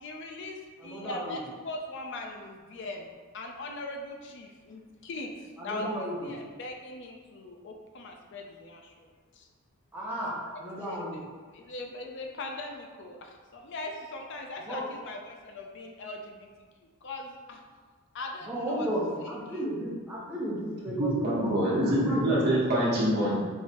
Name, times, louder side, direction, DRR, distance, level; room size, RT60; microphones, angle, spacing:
voice 1, 0.0-3.1 3.3-5.3 5.6-9.5 10.8-11.2 11.5-16.5 16.8-17.6 18.1-18.9 19.2-19.6, left 2 dB, 55° left, 2 dB, 0.4 m, -40 dB
voice 2, 0.8-1.4 5.6-6.3 9.9-11.1 14.7-14.8 18.5-21.6 21.8-22.4, equal, 10° right, -7 dB, 0.9 m, -34 dB
voice 3, 21.0-23.3, right 1 dB, 45° right, -7 dB, 1.2 m, -25 dB
4.6 x 3.2 x 2.9 m, 1.5 s
head